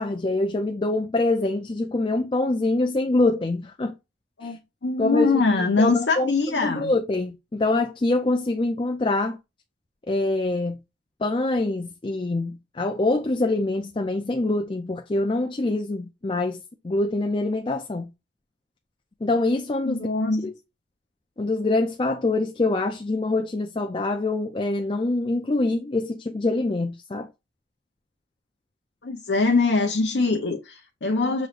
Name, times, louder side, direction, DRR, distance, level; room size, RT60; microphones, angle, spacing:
voice 1, 0.0-3.9 4.4-4.6 5.0-6.3 6.6-9.4 10.1-10.8 11.2-18.1 19.2-20.1 20.4-20.5 21.4-27.3, left 2 dB, 30° left, 0.4 m, -25 dB
voice 2, 4.4-6.9 19.9-20.4 29.0-31.5, left 3 dB, 75° left, 0.7 m, -23 dB
6.2 x 3.1 x 2.5 m
head